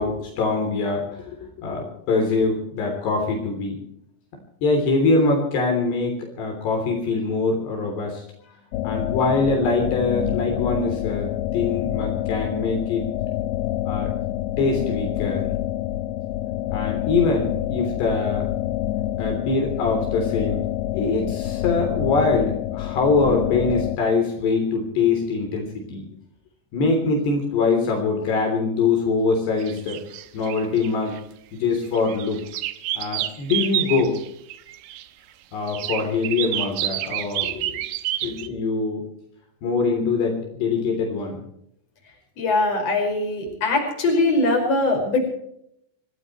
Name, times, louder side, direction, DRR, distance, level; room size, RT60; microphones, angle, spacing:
voice 1, 0.0-3.8 4.6-8.2 8.8-11.3 11.5-13.1 13.9-14.1 14.6-15.4 16.7-18.5 19.2-20.6 20.9-26.1 26.7-30.0 30.3-31.2 31.6-32.4 33.0-34.2 35.5-37.8 38.2-39.0 39.6-41.4, left 4 dB, 70° left, 2 dB, 5.4 m, -23 dB
sound 1, 8.7-24.0, left 14 dB, 90° left, 3.1 m, -27 dB
sound 2, 29.6-31.2 31.7-35.0 35.7-38.5, right 14 dB, 80° right, 3.1 m, -29 dB
voice 2, 42.4-45.3, left 2 dB, 35° left, 2 dB, 6.2 m, -21 dB
26.5 x 17.0 x 3.1 m, 0.74 s
omnidirectional pair, 5.0 m